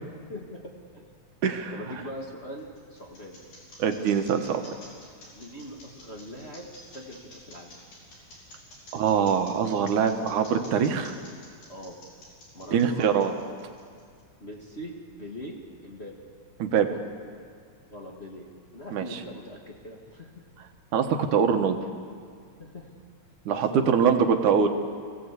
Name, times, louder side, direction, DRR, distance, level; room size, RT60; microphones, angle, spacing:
voice 1, 0.3-0.7 1.7-3.4 5.3-7.8 11.7-12.0 12.5-13.1 14.4-15.5 15.8-16.2 17.8-18.5 18.7-20.4 22.6-22.9 23.5-24.2 24.5-24.6, equal, 25° left, -2 dB, 1.6 m, -41 dB
voice 2, 1.4-1.7 3.8-4.6 8.9-11.2 12.7-13.3 16.6-16.9 18.9-19.2 20.9-21.8 23.5-24.7, right 7 dB, 90° right, 6 dB, 2.8 m, -23 dB
sound 1, 2.4-14.2, left 1 dB, 85° left, 6.4 m, -49 dB
24.5 x 16.5 x 8.3 m, 2.1 s
omnidirectional pair, 3.4 m